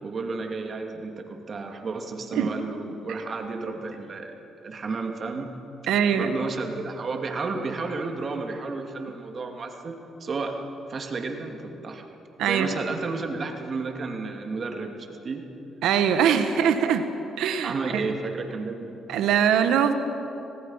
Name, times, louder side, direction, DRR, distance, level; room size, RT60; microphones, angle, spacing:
voice 1, 0.0-4.4 4.6-5.5 6.2-10.6 10.9-12.0 12.4-15.4 17.6-19.0, right 4 dB, 45° right, 3 dB, 2.6 m, -32 dB
voice 2, 5.9-6.4 12.4-12.8 15.8-17.1 17.4-18.1 19.1-19.9, right 8 dB, 85° right, 8 dB, 1.5 m, -22 dB
25.0 x 18.5 x 5.8 m, 3.0 s
cardioid pair, 80°, 0 cm